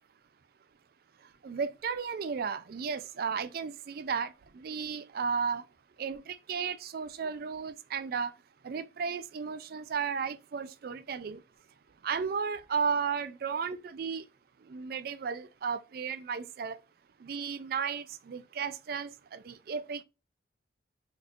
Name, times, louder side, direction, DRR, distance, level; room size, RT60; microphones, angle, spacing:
voice 1, 1.4-5.6 6.0-8.3 8.6-11.4 12.0-14.2 14.7-16.8 17.2-20.0, right 6 dB, 50° right, 0.4 m, -34 dB
4.1 x 3.0 x 2.5 m
head